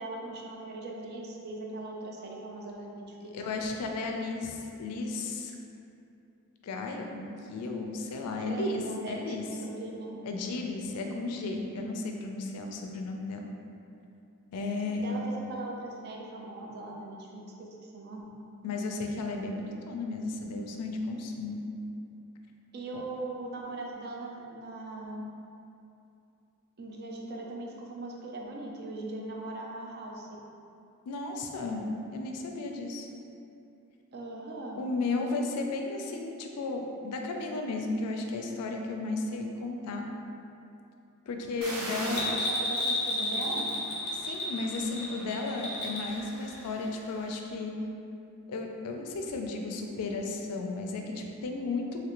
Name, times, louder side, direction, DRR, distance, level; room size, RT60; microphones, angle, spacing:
voice 1, 0.0-3.6 8.4-10.2 14.9-18.3 22.7-25.2 26.8-30.3 34.1-34.8 42.0-43.8, right 2 dB, 45° right, -1 dB, 0.4 m, -40 dB
voice 2, 3.3-5.6 6.6-9.4 10.2-13.5 14.5-15.3 18.6-21.6 22.9-23.0 31.1-31.8 32.1-33.1 34.8-40.1 41.3-42.5 44.2-47.7 48.5-52.0, left 3 dB, 90° left, 3 dB, 0.4 m, -34 dB
sound 1, 41.6-47.3, right 1 dB, 85° right, 0.7 m, -42 dB
Bell, 42.0-46.2 46.5-46.6, left 1 dB, 35° left, 0.6 m, -32 dB
3.1 x 2.4 x 2.9 m, 2.7 s
head